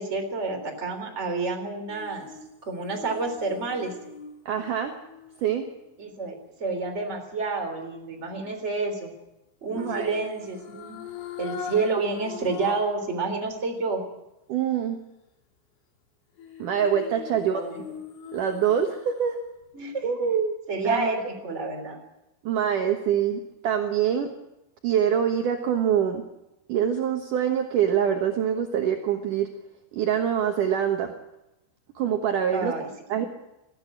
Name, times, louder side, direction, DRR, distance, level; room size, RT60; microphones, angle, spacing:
voice 1, 0.0-2.2 2.6-3.9 6.0-9.1 9.6-11.0 11.4-14.0 17.4-17.8 19.7-20.0 20.7-21.2 21.4-22.0 32.5-32.9 33.1-33.2, right 3 dB, 15° right, 3 dB, 2.9 m, -29 dB
sound 1, 1.9-6.1 9.7-13.1 13.5-13.6 16.4-19.3 19.6-19.7, left 7 dB, 80° left, 5.1 m, -41 dB
voice 2, 4.5-4.9 5.4-5.7 9.8-10.2 14.5-15.0 16.6-17.9 18.3-19.4 20.0-20.6 20.8-21.1 22.4-24.3 24.8-26.2 26.7-29.5 29.9-31.1 32.0-32.7 33.1-33.3, right 8 dB, 70° right, 4 dB, 2.0 m, -25 dB
20.5 x 14.5 x 8.8 m, 0.95 s
omnidirectional pair, 5.5 m